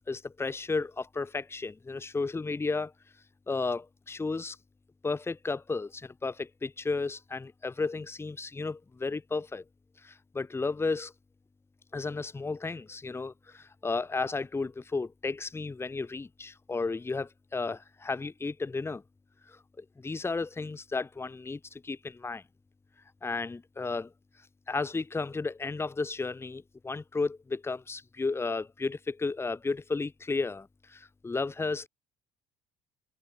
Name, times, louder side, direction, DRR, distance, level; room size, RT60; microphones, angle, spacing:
voice 1, 0.1-2.9 3.5-4.6 5.0-9.6 10.0-11.1 11.9-19.0 19.5-22.4 23.2-24.1 24.7-31.9, left 3 dB, 15° left, 1.0 m, -33 dB
hypercardioid pair, 70°, 15 cm